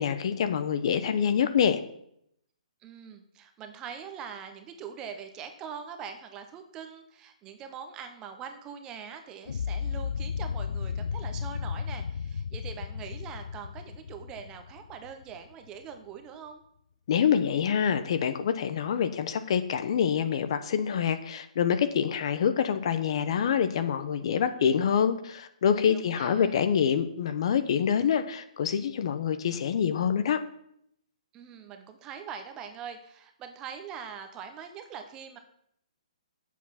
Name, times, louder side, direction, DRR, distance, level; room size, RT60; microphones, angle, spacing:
voice 1, 0.0-1.8 17.1-30.4, left 7 dB, 45° left, 10 dB, 0.8 m, -26 dB
voice 2, 2.8-16.6 25.9-26.6 31.3-35.4, right 7 dB, 15° right, 7 dB, 0.8 m, -43 dB
sound 1, 9.5-15.5, left 6 dB, 85° left, 0.4 m, -34 dB
8.3 x 7.3 x 5.8 m, 0.72 s
hypercardioid pair, 160°, 4 cm